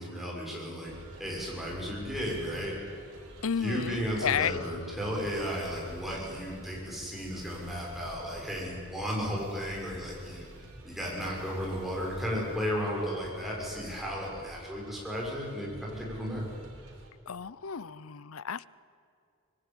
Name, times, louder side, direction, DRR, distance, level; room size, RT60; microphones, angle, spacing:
voice 1, 0.0-2.8 3.6-10.5 10.8-16.5, equal, ahead, -4 dB, 6.5 m, -34 dB
sound 1, 0.9-17.1, right 1 dB, 85° right, 4.2 m, -50 dB
voice 2, 3.4-4.6 17.3-18.7, left 7 dB, 70° left, 19 dB, 0.6 m, -32 dB
25.5 x 21.0 x 9.1 m, 2.4 s
head